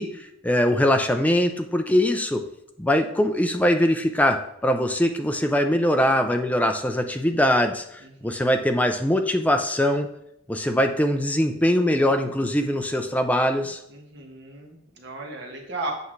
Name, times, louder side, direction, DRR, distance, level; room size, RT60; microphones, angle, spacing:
voice 1, 0.0-2.4 2.8-10.1 10.5-13.8, left 1 dB, 10° left, 5 dB, 0.5 m, -22 dB
voice 2, 8.0-8.6 13.9-15.9, right 2 dB, 60° right, 1 dB, 1.4 m, -36 dB
8.1 x 5.8 x 3.2 m, 0.79 s
head